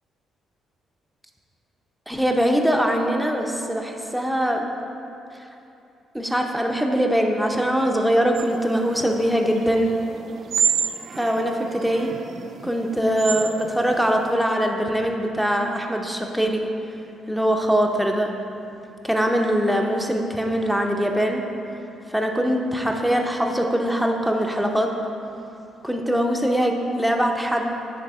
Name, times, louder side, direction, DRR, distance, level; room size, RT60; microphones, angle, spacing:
voice 1, 2.1-4.7 6.1-10.0 11.2-12.1 12.6-16.7 17.3-18.3 19.0-21.4 22.1-24.9 25.8-27.7, equal, ahead, 2 dB, 0.7 m, -22 dB
sound 1, 8.3-14.3, right 7 dB, 55° right, 0.4 m, -30 dB
10.0 x 3.4 x 4.3 m, 2.8 s
cardioid pair, 90°, 0 cm